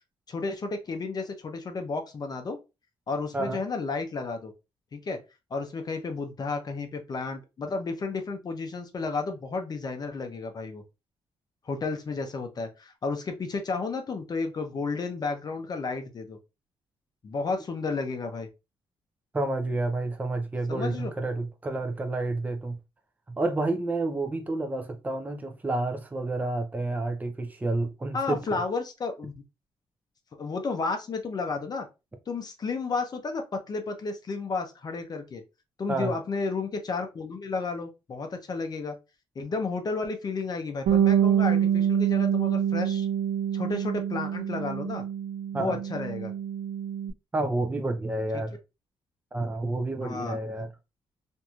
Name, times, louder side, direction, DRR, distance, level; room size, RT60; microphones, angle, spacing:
voice 1, 0.3-2.6 3.1-4.5 4.9-5.2 5.5-10.8 11.7-16.4 17.2-18.5 20.7-21.1 28.1-29.3 30.4-31.9 32.3-35.4 35.8-39.0 39.4-43.1 43.5-45.0 45.5-46.3 48.3-48.4 50.0-50.4, left 4 dB, 40° left, 0.6 m, -32 dB
voice 2, 19.3-22.8 23.3-28.6 35.9-36.1 45.5-45.8 47.3-48.6 49.3-50.7, right 2 dB, 15° right, 0.5 m, -29 dB
Bass guitar, 40.9-47.1, right 9 dB, 80° right, 0.5 m, -26 dB
2.9 x 2.6 x 2.3 m
cardioid pair, 80°, 10 cm